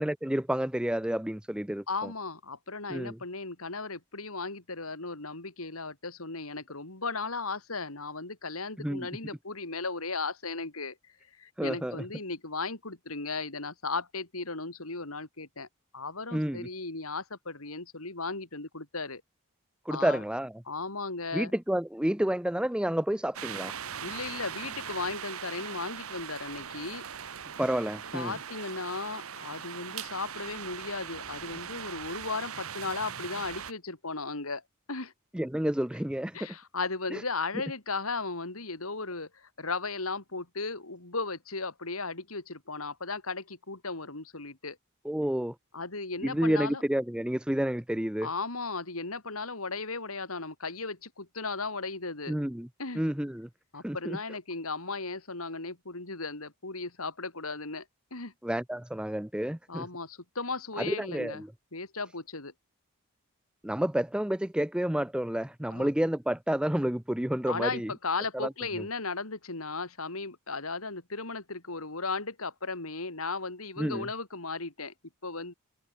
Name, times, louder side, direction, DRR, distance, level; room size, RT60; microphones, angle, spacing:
voice 1, 0.0-1.8 2.9-3.2 8.8-9.1 11.6-12.0 16.3-16.7 19.9-20.5 21.3-23.7 27.6-28.3 35.3-36.4 37.1-37.2 45.0-45.5 46.2-48.3 52.3-52.7 53.0-53.5 53.8-54.2 58.4-59.9 60.8-61.5 63.6-67.9 68.3-68.5 73.8-74.1, right 1 dB, 5° right, 0.5 m, -30 dB
voice 2, 1.9-11.0 11.4-15.7 15.9-19.2 19.9-20.2 20.7-21.5 24.0-27.0 28.1-34.6 34.9-35.1 36.3-44.8 45.7-46.8 48.2-52.3 52.8-53.0 53.7-57.9 58.1-58.3 59.7-61.4 61.7-62.5 65.7-65.9 67.5-74.9 75.2-75.5, left 3 dB, 85° left, 3.8 m, -36 dB
sound 1, 23.3-33.7, right 8 dB, 85° right, 1.4 m, -40 dB
head